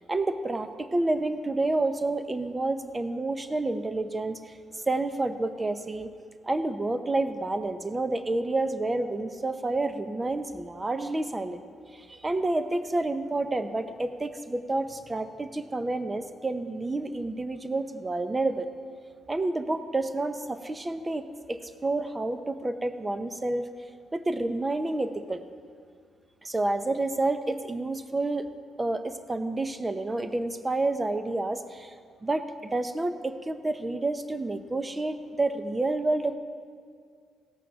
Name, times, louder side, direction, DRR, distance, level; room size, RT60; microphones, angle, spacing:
voice 1, 0.0-6.1 6.4-11.6 11.9-18.7 19.3-23.7 24.1-25.4 26.4-28.5 28.8-31.9 32.2-36.4, right 2 dB, 20° right, 10 dB, 0.8 m, -29 dB
16.5 x 5.9 x 7.3 m, 2.1 s
cardioid pair, 90°, 0 cm